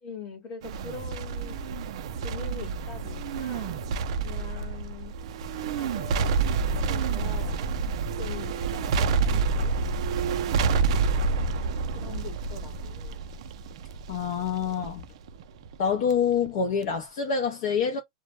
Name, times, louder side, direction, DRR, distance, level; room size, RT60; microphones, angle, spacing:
voice 1, 0.0-1.6 2.2-3.8 4.2-5.1 5.5-7.6 8.1-9.7 11.9-13.3, left 5 dB, 30° left, 0.9 m, -43 dB
sound 1, 0.6-16.1 16.5-16.6, right 4 dB, 60° right, 0.4 m, -28 dB
voice 2, 14.1-15.0 15.8-18.0, left 6 dB, 50° left, 0.5 m, -26 dB
2.1 x 2.1 x 2.9 m
supercardioid pair, 160°, 4 cm